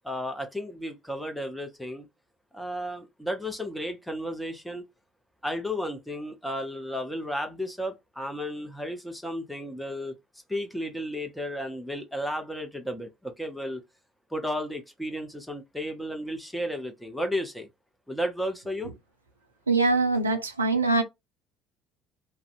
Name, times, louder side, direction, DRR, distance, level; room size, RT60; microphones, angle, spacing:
voice 1, 0.0-2.1 2.5-4.8 5.4-10.1 10.5-13.8 14.3-17.7 18.1-18.9, equal, ahead, 0.7 m, -33 dB
voice 2, 19.7-21.0, right 3 dB, 85° right, 0.3 m, -23 dB
2.5 x 2.1 x 2.4 m
figure-of-eight pair, 60°, 0 cm